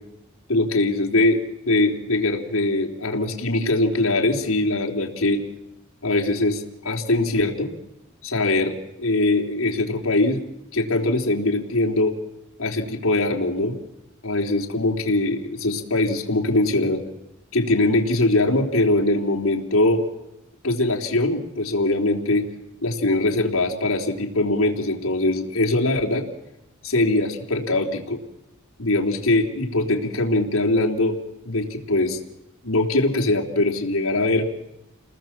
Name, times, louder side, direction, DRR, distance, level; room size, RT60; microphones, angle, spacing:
voice 1, 0.5-5.4 6.0-7.7 8.2-10.4 10.7-12.1 12.6-13.7 14.2-17.0 17.5-20.0 20.6-22.4 22.8-26.2 26.8-28.2 28.8-31.2 31.4-32.2 32.6-34.5, left 2 dB, 80° left, 1 dB, 3.5 m, -22 dB
29.5 x 20.0 x 7.4 m, 0.91 s
head